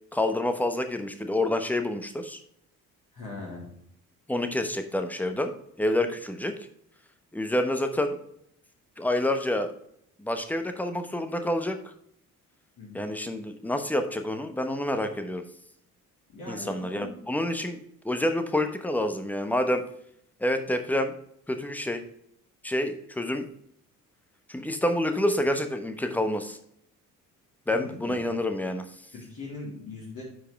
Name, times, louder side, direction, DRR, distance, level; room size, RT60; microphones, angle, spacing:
voice 1, 0.1-2.4 4.3-5.5 5.8-6.6 7.3-8.2 9.0-9.7 10.2-11.8 12.9-15.5 16.5-19.8 20.4-21.1 21.5-22.0 22.6-23.4 24.5-26.6 27.7-29.0, left 1 dB, 5° left, 8 dB, 1.0 m, -28 dB
voice 2, 3.1-3.7 12.8-13.1 16.3-17.1 27.7-28.2 29.1-30.2, left 3 dB, 45° left, -6 dB, 3.3 m, -40 dB
10.0 x 5.0 x 3.4 m, 0.70 s
figure-of-eight pair, 45°, 45 cm